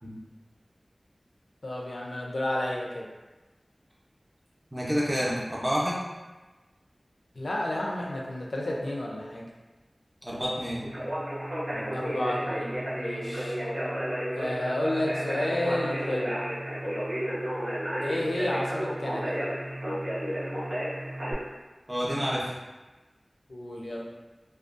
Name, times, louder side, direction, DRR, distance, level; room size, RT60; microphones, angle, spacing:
voice 1, 1.6-3.1 7.4-9.5 11.9-13.6 14.4-16.3 18.0-19.4 23.5-24.1, left 1 dB, 85° left, -3 dB, 0.4 m, -31 dB
voice 2, 4.7-6.0 10.2-10.9 11.7-11.9 21.9-22.5, equal, 15° right, -6 dB, 0.6 m, -29 dB
Conversation, 10.8-21.3, equal, 60° right, 0.8 m, -32 dB
2.5 x 2.2 x 2.4 m, 1.2 s
wide cardioid pair, 60°, 0 cm